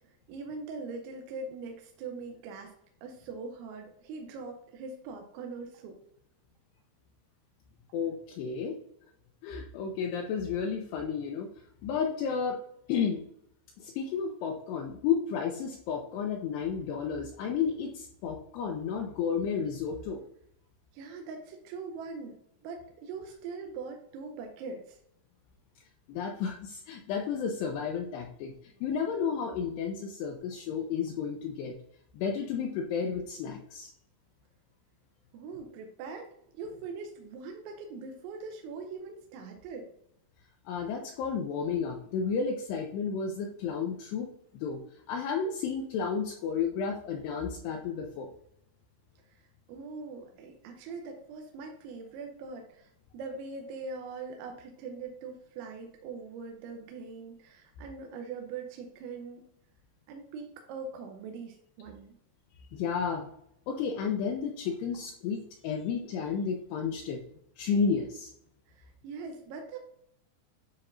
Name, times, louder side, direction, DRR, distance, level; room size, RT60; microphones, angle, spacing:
voice 1, 0.3-2.7 3.0-6.0 20.9-22.4 22.6-25.0 35.3-36.3 36.5-39.9 49.3-49.4 49.7-59.4 60.1-62.1 68.7-69.8, right 4 dB, 80° right, 3 dB, 3.0 m, -42 dB
voice 2, 7.9-8.8 9.4-11.5 11.8-12.6 12.9-13.2 13.8-20.2 26.1-28.5 28.8-31.7 32.1-33.9 40.7-44.3 44.6-44.8 45.1-48.3 62.7-63.3 63.7-67.2 67.6-68.3, left 6 dB, 85° left, 2 dB, 2.3 m, -32 dB
9.5 x 4.2 x 2.5 m, 0.73 s
omnidirectional pair, 5.5 m